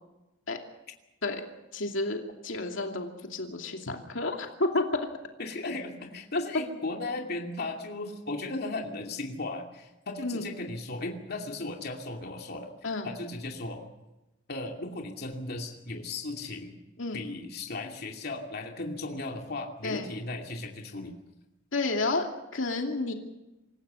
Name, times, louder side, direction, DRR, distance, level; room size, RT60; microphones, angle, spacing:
voice 1, 1.7-5.1 10.2-10.5 12.8-13.1 17.0-17.2 19.8-20.1 21.7-23.1, left 2 dB, 80° left, 3 dB, 2.6 m, -31 dB
voice 2, 5.4-12.7 13.0-13.8 14.5-16.8 17.1-21.1, left 2 dB, 55° left, 2 dB, 2.6 m, -36 dB
26.5 x 16.0 x 6.9 m, 0.98 s
head